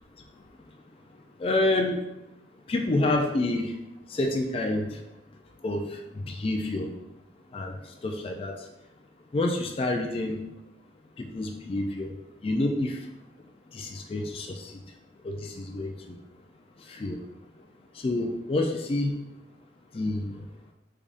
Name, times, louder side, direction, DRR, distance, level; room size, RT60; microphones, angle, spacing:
voice 1, 1.4-2.1 2.7-3.7 4.1-5.0 5.6-6.9 7.5-7.8 8.0-8.6 9.3-10.4 11.2-12.1 12.4-13.0 13.7-14.8 15.2-16.2 16.9-17.2 17.9-19.1 19.9-20.4, left 2 dB, 30° left, 2 dB, 0.3 m, -28 dB
3.7 x 3.4 x 2.4 m, 0.92 s
head